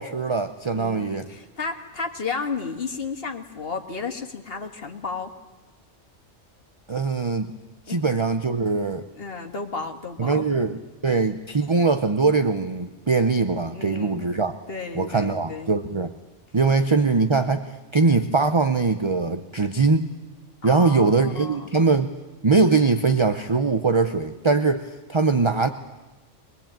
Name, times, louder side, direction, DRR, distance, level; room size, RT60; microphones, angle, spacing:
voice 1, 0.0-1.3 6.9-7.5 7.9-9.0 10.2-14.5 14.9-16.1 16.5-20.1 20.6-22.1 22.4-25.7, right 4 dB, 30° right, 9 dB, 0.8 m, -22 dB
voice 2, 0.7-5.3 7.9-8.0 9.1-10.5 13.7-14.3 14.7-15.7 20.6-21.7, left 4 dB, 55° left, 5 dB, 2.0 m, -33 dB
22.5 x 21.0 x 9.0 m, 1.2 s
omnidirectional pair, 1.2 m